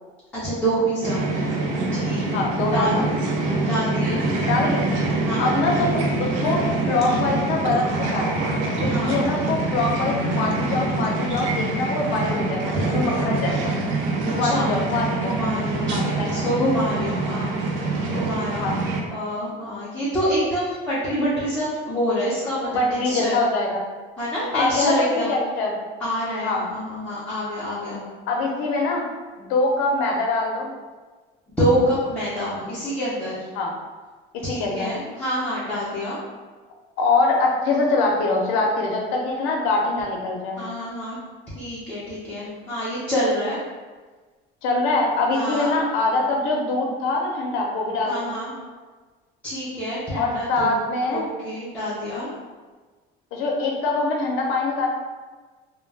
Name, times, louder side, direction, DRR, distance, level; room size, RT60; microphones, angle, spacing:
voice 1, 0.3-1.6 1.9-3.2 3.7-4.3 5.2-5.5 8.9-9.2 12.7-12.8 14.4-14.7 15.2-17.9 18.1-18.7 19.1-23.4 24.2-25.3 26.0-28.0 31.6-33.5 34.4-36.2 40.6-41.2 41.5-43.6 45.3-45.7 48.1-48.5 49.4-50.8 51.1-52.3, equal, 5° left, -11 dB, 0.6 m, -26 dB
sound 1, 1.0-19.0, right 2 dB, 65° right, 0.5 m, -25 dB
voice 2, 2.3-3.1 4.5-4.9 5.4-8.3 8.8-13.7 14.3-15.3 15.9-16.3 18.6-18.7 22.7-23.8 24.5-25.7 26.4-26.7 28.3-29.1 29.4-30.7 33.5-33.7 34.5-34.9 37.0-40.7 44.6-48.4 50.1-51.3 53.3-54.9, left 3 dB, 75° left, 0 dB, 0.6 m, -23 dB
2.2 x 2.2 x 3.3 m, 1.4 s
cardioid pair, 140°, 21 cm